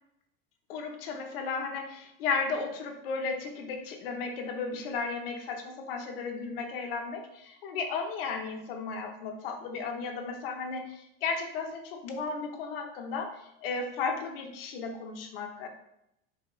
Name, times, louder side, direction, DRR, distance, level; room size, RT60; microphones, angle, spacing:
voice 1, 0.7-15.7, left 4 dB, 75° left, 4 dB, 0.7 m, -34 dB
4.2 x 2.7 x 2.9 m, 0.81 s
supercardioid pair, 160°, 29 cm